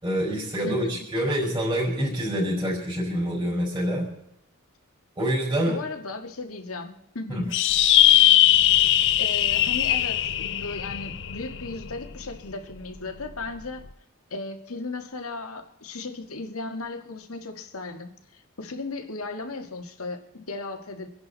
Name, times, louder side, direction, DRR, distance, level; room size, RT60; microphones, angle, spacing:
voice 1, 0.0-4.1 5.1-5.8 7.3-7.5, equal, 20° right, 5.1 m, -26 dB
voice 2, 0.6-1.1 5.7-7.5 8.8-8.9 9.2-13.8 14.3-21.1, left 3 dB, 85° left, 2.0 m, -36 dB
sound 1, 7.5-12.3, left 12 dB, 55° left, 0.7 m, -20 dB
26.5 x 11.0 x 4.1 m
head